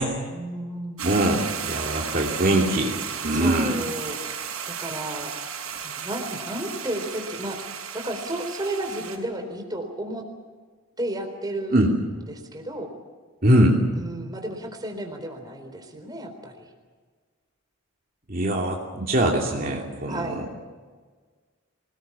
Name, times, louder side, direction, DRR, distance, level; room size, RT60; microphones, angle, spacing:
voice 1, 0.3-1.0 3.3-4.2 4.7-5.3 5.8-7.6 7.9-10.2 11.0-11.9 12.3-12.9 13.9-16.7 20.1-20.4, right 1 dB, 20° right, 4 dB, 4.1 m, -33 dB
voice 2, 1.0-3.8 11.7-11.9 13.4-13.8 18.3-20.3, right 1 dB, 40° right, -1 dB, 2.9 m, -22 dB
sound 1, 1.0-9.2, right 7 dB, 80° right, 5.8 m, -34 dB
26.5 x 20.0 x 7.2 m, 1.4 s
head